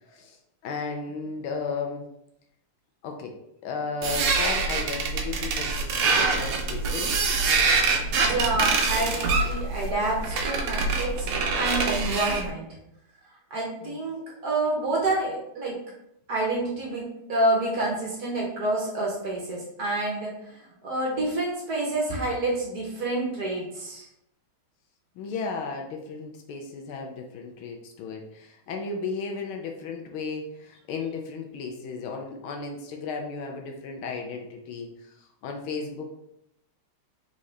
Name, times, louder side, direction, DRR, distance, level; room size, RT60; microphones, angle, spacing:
voice 1, 0.6-2.0 3.0-3.3 3.6-7.1 13.8-14.0 25.2-36.0, left 4 dB, 80° left, 2 dB, 1.5 m, -34 dB
sound 1, 4.0-12.5, right 4 dB, 85° right, 1.6 m, -25 dB
voice 2, 8.0-11.2 11.5-12.7 13.5-15.8 16.3-17.0 17.3-20.6 20.8-24.0, right 2 dB, 55° right, -3 dB, 1.2 m, -28 dB
4.0 x 3.7 x 3.2 m, 0.80 s
omnidirectional pair, 2.3 m